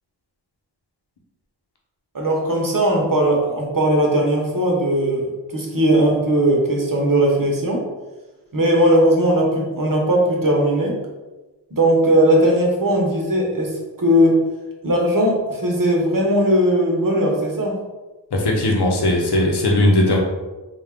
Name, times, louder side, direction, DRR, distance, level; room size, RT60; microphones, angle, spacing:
voice 1, 2.1-7.8 8.5-11.0 11.7-14.4 14.8-17.8, right 1 dB, 45° right, -1 dB, 1.0 m, -18 dB
voice 2, 18.3-20.2, left 1 dB, 60° left, -1 dB, 0.9 m, -18 dB
3.6 x 2.4 x 3.6 m, 1.2 s
wide cardioid pair, 45°, 45 cm